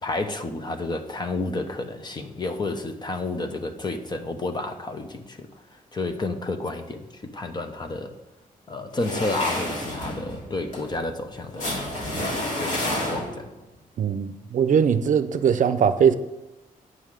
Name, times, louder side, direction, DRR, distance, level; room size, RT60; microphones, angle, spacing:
voice 1, 0.0-5.5 5.9-8.1 8.7-11.7 12.6-13.5, left 2 dB, 30° left, 1.0 m, -30 dB
sound 1, 8.9-13.6, left 1 dB, 55° left, 3.1 m, -30 dB
voice 2, 14.0-16.1, right 7 dB, 60° right, 0.6 m, -20 dB
9.7 x 5.6 x 6.5 m
wide cardioid pair, 140°, 15 cm